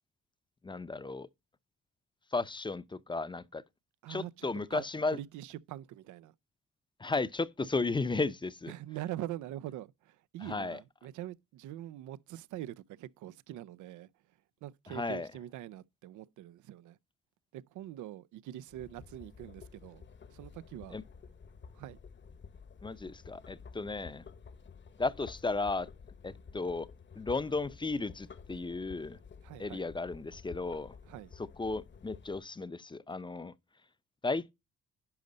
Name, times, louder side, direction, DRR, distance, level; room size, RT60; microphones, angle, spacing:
voice 1, 0.6-1.3 2.3-3.6 4.1-5.2 7.0-8.7 10.4-10.8 14.9-15.3 20.9-21.0 22.8-24.2 25.0-25.9 26.2-26.9 27.2-29.2 29.6-30.9 31.4-33.5 34.2-34.5, left 3 dB, 15° left, 0.6 m, -34 dB
voice 2, 4.0-4.8 5.2-6.3 8.7-14.1 14.6-17.0 17.5-20.0 20.3-21.0 21.7-22.0 29.4-29.9 31.1-31.3, right 13 dB, 80° right, 0.5 m, -44 dB
sound 1, 18.7-32.4, left 5 dB, 40° left, 1.0 m, -52 dB
10.5 x 5.2 x 3.9 m
cardioid pair, 90°, 30 cm